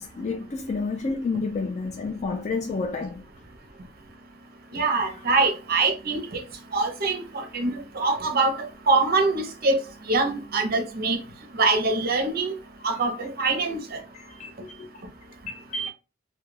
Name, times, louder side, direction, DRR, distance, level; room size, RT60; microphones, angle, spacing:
voice 1, 0.0-3.2 14.2-15.1 15.5-15.9, left 3 dB, 35° left, 0.3 m, -30 dB
voice 2, 4.7-6.4 6.7-9.8 10.1-11.2 11.5-12.5 12.8-14.0, right 3 dB, 50° right, 0.6 m, -24 dB
2.3 x 2.1 x 3.1 m
head